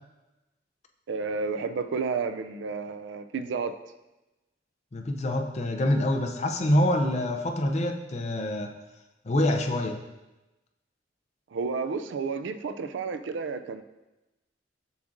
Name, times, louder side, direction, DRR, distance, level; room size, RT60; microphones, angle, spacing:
voice 1, 1.1-3.7 11.5-13.8, right 5 dB, 70° right, 9 dB, 0.4 m, -31 dB
voice 2, 4.9-8.7 9.2-10.0, left 1 dB, 35° left, 4 dB, 0.5 m, -26 dB
7.0 x 6.0 x 2.6 m, 1.0 s
head